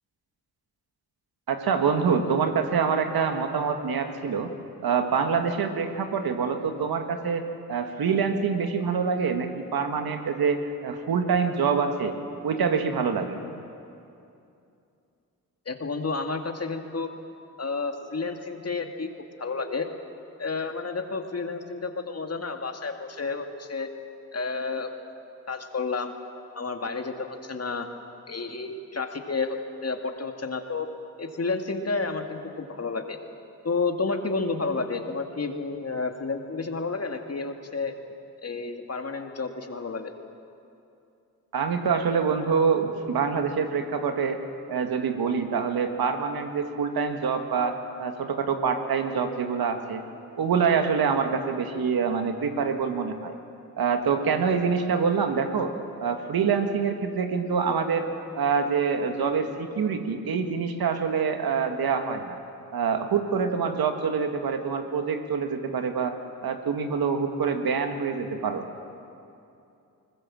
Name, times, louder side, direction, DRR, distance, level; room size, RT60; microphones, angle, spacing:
voice 1, 1.5-4.5 4.8-7.4 7.7-12.2 12.4-13.4 41.5-44.4 44.7-50.0 50.4-53.3 53.8-55.7 56.0-58.1 58.4-62.4 62.7-66.2 66.4-68.6, right 6 dB, 80° right, 6 dB, 1.7 m, -26 dB
voice 2, 15.7-17.1 17.6-19.1 19.4-19.9 20.4-23.9 24.3-24.9 25.5-26.2 26.5-27.9 28.3-30.9 31.2-33.2 33.6-37.9 38.4-40.1, left 4 dB, 45° left, 5 dB, 2.1 m, -31 dB
21.5 x 20.0 x 7.6 m, 2.6 s
cardioid pair, 50°, 36 cm